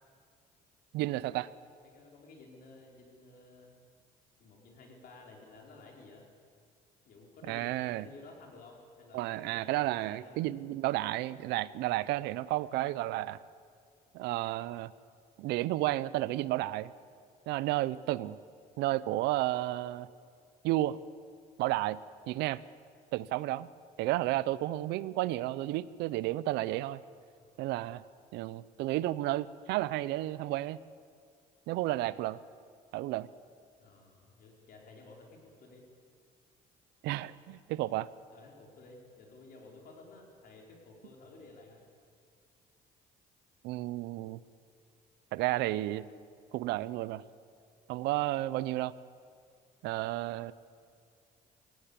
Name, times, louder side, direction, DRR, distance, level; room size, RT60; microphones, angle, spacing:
voice 1, 0.9-1.5 7.5-8.0 9.1-13.4 14.1-14.9 15.4-16.9 17.5-18.4 18.8-20.1 20.6-21.0 21.6-22.0 22.3-22.6 23.1-23.7 24.0-27.0 27.6-28.0 28.3-30.8 31.7-32.4 32.9-33.3 37.0-38.1 43.6-44.4 45.3-46.0 46.5-47.2 47.9-48.9 49.8-50.5, right 16 dB, 90° right, 18 dB, 0.6 m, -32 dB
voice 2, 1.8-3.7 4.4-6.3 7.0-10.4 27.3-27.6 33.8-35.8 38.3-41.8, left 3 dB, 60° left, 0 dB, 4.9 m, -54 dB
18.5 x 17.0 x 8.5 m, 2.3 s
cardioid pair, 110°, 17 cm